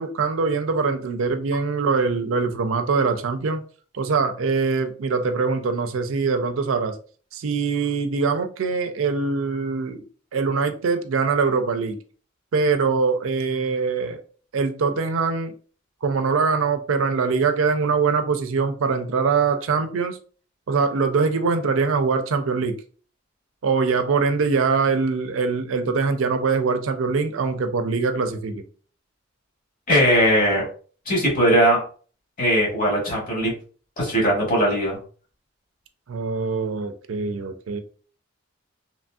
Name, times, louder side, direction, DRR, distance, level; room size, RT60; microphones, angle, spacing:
voice 1, 0.0-3.6 3.9-7.0 7.3-10.0 10.3-12.0 12.5-14.2 14.5-15.5 16.0-20.2 20.7-22.8 23.6-28.6 36.1-37.8, right 4 dB, 85° right, 0.4 m, -23 dB
voice 2, 29.9-30.6 31.1-31.8 32.4-33.5 34.0-35.0, equal, 45° left, 1.4 m, -19 dB
3.0 x 2.5 x 2.3 m
head